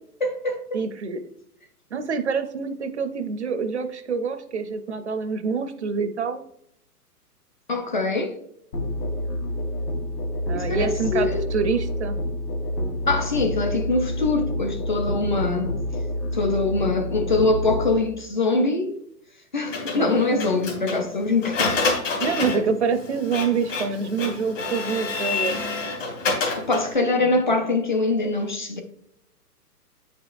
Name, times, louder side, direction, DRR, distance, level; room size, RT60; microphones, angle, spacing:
voice 1, 0.2-0.6 7.7-8.4 10.5-11.5 13.1-15.7 16.3-19.0 19.5-21.8 22.5-22.7 26.6-28.8, left 3 dB, 30° left, 0.5 m, -23 dB
voice 2, 0.7-1.2 1.9-6.4 10.5-12.2 20.0-20.5 22.2-25.6 27.2-27.5, right 5 dB, 45° right, 0.5 m, -26 dB
Musical instrument, 8.7-18.0, left 1 dB, 80° left, 2.4 m, -28 dB
Printer, 19.7-26.9, left 3 dB, 50° left, 2.2 m, -28 dB
8.6 x 5.1 x 2.4 m
hypercardioid pair, 165°, 48 cm